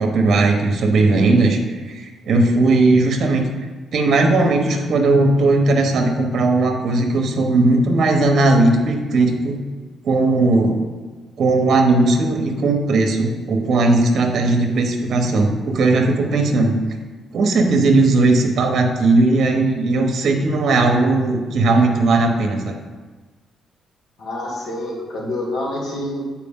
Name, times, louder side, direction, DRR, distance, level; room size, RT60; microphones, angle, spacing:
voice 1, 0.0-3.4 3.9-9.6 10.0-10.8 11.4-16.8 17.3-22.7, right 2 dB, 60° right, 3 dB, 1.0 m, -17 dB
voice 2, 24.2-26.2, left 1 dB, 70° left, -3 dB, 2.0 m, -27 dB
8.2 x 4.6 x 3.7 m, 1.4 s
cardioid pair, 90°, 0 cm